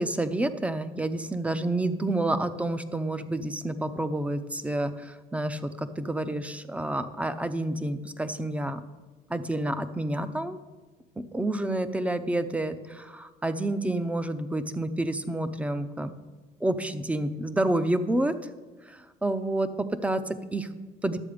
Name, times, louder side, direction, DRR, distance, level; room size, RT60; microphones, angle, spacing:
voice 1, 0.0-8.8 9.3-10.6 11.2-16.1 16.6-18.4 18.8-20.7 21.0-21.2, right 1 dB, 10° right, 12 dB, 0.6 m, -29 dB
11.5 x 7.7 x 5.0 m, 1.3 s
cardioid pair, 110°, 17 cm